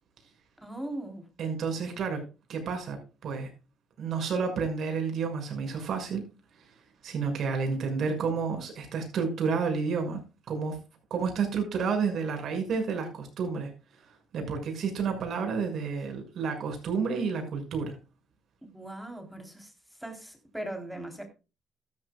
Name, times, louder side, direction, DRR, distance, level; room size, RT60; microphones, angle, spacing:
voice 1, 0.6-1.3 18.6-19.7 20.0-21.2, right 1 dB, 5° right, 3.6 m, -39 dB
voice 2, 1.4-2.2 2.5-3.0 3.2-3.5 4.0-6.2 6.6-6.7 7.0-10.2 10.5-10.8 11.1-13.7 14.3-18.0, right 5 dB, 55° right, 6.2 m, -30 dB
14.0 x 13.5 x 2.3 m
cardioid pair, 130°, 0 cm